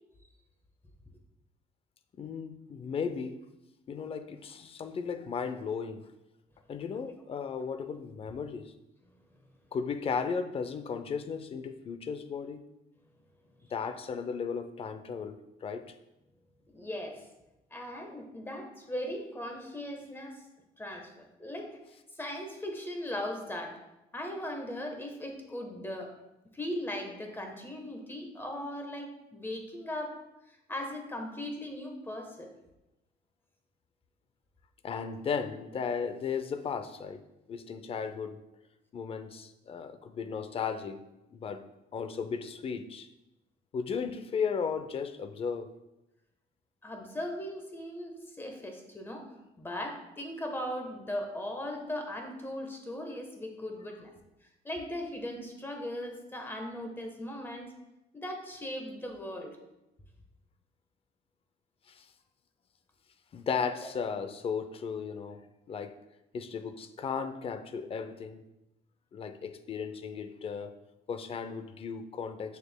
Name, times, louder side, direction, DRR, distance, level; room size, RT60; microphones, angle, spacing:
voice 1, 2.2-3.4 3.9-6.1 6.7-8.7 9.7-12.6 13.7-16.0 34.8-37.2 37.5-38.4 38.9-41.0 41.3-41.6 41.9-43.1 43.7-45.7 61.9-62.1 63.3-65.4 65.7-65.9 66.3-68.4 69.1-70.7 71.1-72.6, left 6 dB, 35° left, 10 dB, 0.5 m, -35 dB
voice 2, 16.7-17.3 17.7-20.4 20.8-21.8 22.1-23.8 24.1-26.2 26.5-30.2 30.5-32.5 46.8-49.3 49.6-54.1 54.6-57.7 58.1-59.6, left 1 dB, 15° left, 3 dB, 1.1 m, -38 dB
7.1 x 6.5 x 2.2 m, 0.93 s
cardioid pair, 110°, 17 cm